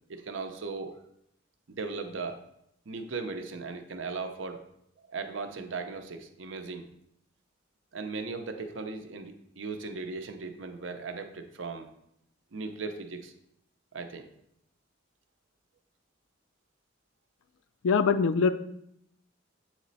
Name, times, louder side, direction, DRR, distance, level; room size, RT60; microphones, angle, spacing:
voice 1, 0.1-1.0 1.7-2.4 2.9-4.6 5.1-6.9 7.9-11.9 12.5-13.3 13.9-14.3, right 4 dB, 65° right, 6 dB, 0.6 m, -37 dB
voice 2, 17.8-18.5, left 5 dB, 80° left, 12 dB, 0.4 m, -23 dB
8.0 x 3.1 x 4.1 m, 0.75 s
head